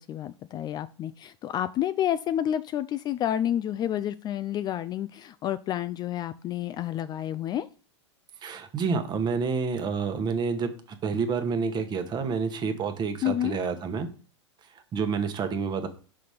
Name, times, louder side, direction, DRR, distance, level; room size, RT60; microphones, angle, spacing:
voice 1, 0.0-7.7 13.2-13.5, left 11 dB, 30° left, 12 dB, 0.3 m, -29 dB
voice 2, 8.4-10.7 11.0-14.1 14.9-15.9, right 5 dB, 30° right, 8 dB, 1.1 m, -28 dB
5.9 x 4.1 x 5.0 m, 0.37 s
hypercardioid pair, 105°, 15 cm